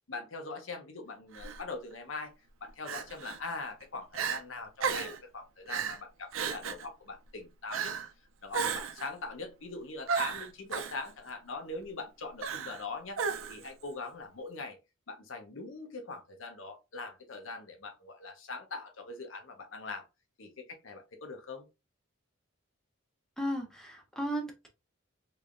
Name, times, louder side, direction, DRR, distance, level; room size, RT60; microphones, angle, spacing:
voice 1, 0.1-2.3 2.6-8.0 8.4-13.2 13.5-14.8 15.1-20.0 20.4-21.7, left 3 dB, 75° left, 0.8 m, -42 dB
Crying sobbing, 1.3-1.6 2.9-3.4 3.8-3.9 4.1-4.4 4.8-5.2 5.7-6.0 6.3-6.9 7.7-8.1 8.5-9.1 10.1-11.0 12.4-12.8 13.2-13.7, right 6 dB, 85° right, 0.6 m, -33 dB
voice 2, 23.4-24.7, equal, 5° left, 0.7 m, -35 dB
3.3 x 3.3 x 2.5 m
head